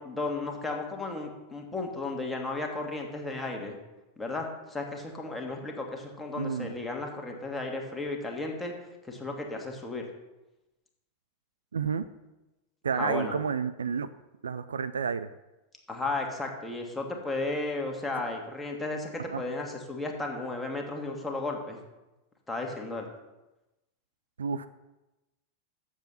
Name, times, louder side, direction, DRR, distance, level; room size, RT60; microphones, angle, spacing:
voice 1, 0.0-3.8 4.2-8.7 9.1-10.0 12.9-13.4 15.9-21.8 22.5-23.1, left 2 dB, 10° left, 1 dB, 1.7 m, -34 dB
voice 2, 6.4-6.7 11.7-12.1 12.8-14.1 14.4-15.3 19.3-19.4 24.4-24.7, right 6 dB, 70° right, 14 dB, 0.3 m, -30 dB
7.3 x 7.3 x 5.6 m, 1.0 s
figure-of-eight pair, 90°, 0 cm